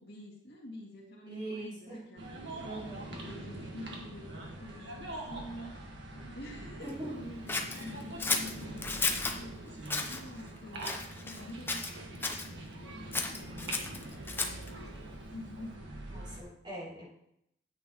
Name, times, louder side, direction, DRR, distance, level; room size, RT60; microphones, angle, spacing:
voice 1, 0.0-2.5 3.2-5.8 6.1-14.0 14.3-15.8, left 1 dB, 60° left, -3 dB, 2.4 m, -48 dB
voice 2, 1.3-2.0 2.6-3.1 6.8-7.2 13.5-13.7 16.1-17.1, right 2 dB, 25° right, -6 dB, 3.1 m, -42 dB
sound 1, 2.2-16.4, right 1 dB, 75° right, 1.7 m, -44 dB
Scissors, 7.5-9.4 9.8-10.2 10.8-11.4 11.7-12.5 13.1-14.7, left 3 dB, 10° left, 0.7 m, -33 dB
9.3 x 8.6 x 3.1 m, 0.75 s
head